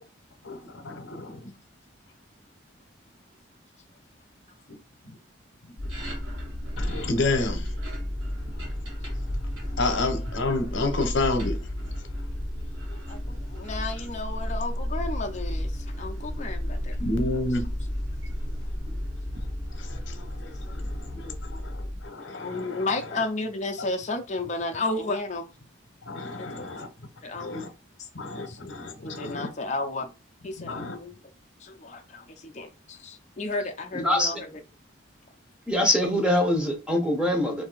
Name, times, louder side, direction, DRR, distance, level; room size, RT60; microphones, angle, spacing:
voice 1, 0.4-1.5 5.0-5.2 6.8-7.8 8.5-8.8 9.1-9.3 9.8-12.1 12.9-13.0 17.0-17.7 19.7-23.2 23.8-23.9 26.0-26.9 27.4-27.7 28.1-29.5 30.6-31.0, left 2 dB, 70° left, 0.9 m, -31 dB
sound 1, 5.8-22.1, left 1 dB, 85° right, 1.1 m, -32 dB
voice 2, 13.1-17.0 22.3-25.5 26.4-26.8 27.2-27.7 28.5-28.6 29.0-30.1 30.4-31.1 31.6-34.5, left 2 dB, 35° left, 0.5 m, -33 dB
voice 3, 33.9-34.4 35.7-37.6, left 1 dB, 5° right, 0.9 m, -23 dB
2.7 x 2.7 x 4.0 m
head